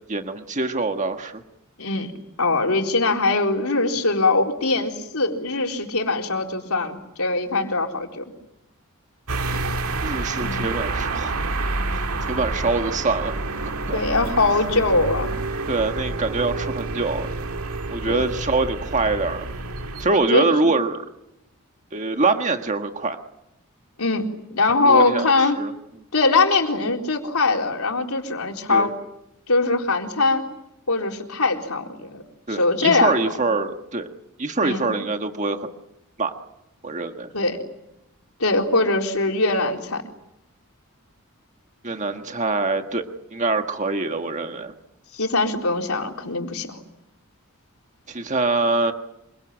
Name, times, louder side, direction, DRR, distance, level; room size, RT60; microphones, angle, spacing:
voice 1, 0.1-1.3 10.0-11.3 11.9-13.3 13.9-14.0 15.7-17.3 17.9-19.5 20.0-21.0 21.9-23.2 24.8-25.7 28.7-28.9 32.5-34.1 34.4-35.7 36.2-36.3 36.8-37.3 41.8-44.7 48.1-48.9, right 3 dB, 35° right, 6 dB, 1.6 m, -24 dB
voice 2, 1.8-2.1 2.4-8.2 10.4-10.7 13.9-15.3 18.1-18.2 20.1-20.7 24.0-25.6 26.1-28.9 29.5-30.4 30.9-32.2 32.5-33.2 34.6-34.9 37.3-37.6 38.4-40.0 45.1-46.8, left 3 dB, 90° left, 2 dB, 4.1 m, -22 dB
sound 1, 9.3-20.1, right 3 dB, 90° right, 1.9 m, -28 dB
26.5 x 24.5 x 9.1 m, 0.86 s
head